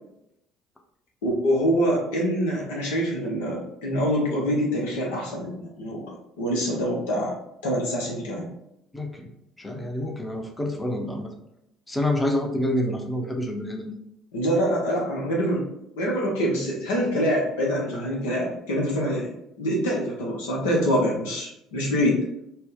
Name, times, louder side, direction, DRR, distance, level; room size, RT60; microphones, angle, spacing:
voice 1, 1.2-7.4 7.6-8.5 14.3-15.6 16.0-19.3 19.6-22.2, equal, 75° left, -3 dB, 0.8 m, -25 dB
voice 2, 8.9-9.3 9.6-11.3 11.9-13.9, left 1 dB, 15° left, 3 dB, 0.8 m, -27 dB
4.3 x 2.2 x 3.5 m, 0.81 s
hypercardioid pair, 60°, 0 cm